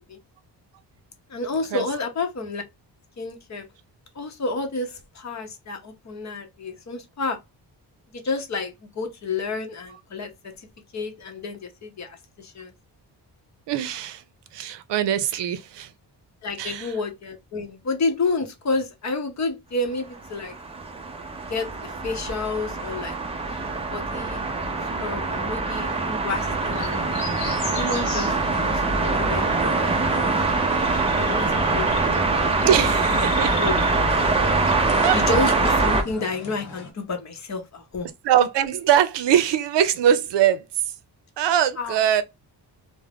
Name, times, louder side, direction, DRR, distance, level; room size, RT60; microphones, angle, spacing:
voice 1, 1.3-2.6 3.2-3.7 4.1-7.4 8.1-10.7 10.9-12.7 16.4-20.5 21.5-23.2 23.5-24.4 25.0-27.0 27.7-30.4 31.2-32.2 33.0-33.1 33.6-33.7 35.1-38.1 41.8-42.0, left 3 dB, 40° left, 0.7 m, -30 dB
voice 2, 13.7-14.2 14.5-15.9 16.6-16.9 32.4-33.5 35.0-35.2 38.2-40.9 41.4-42.2, right 10 dB, 90° right, 0.5 m, -22 dB
sound 1, 20.3-36.0, right 3 dB, 15° right, 0.4 m, -23 dB
sound 2, 26.3-36.9, left 3 dB, 75° left, 0.9 m, -37 dB
2.4 x 2.1 x 3.3 m
wide cardioid pair, 160°, 41 cm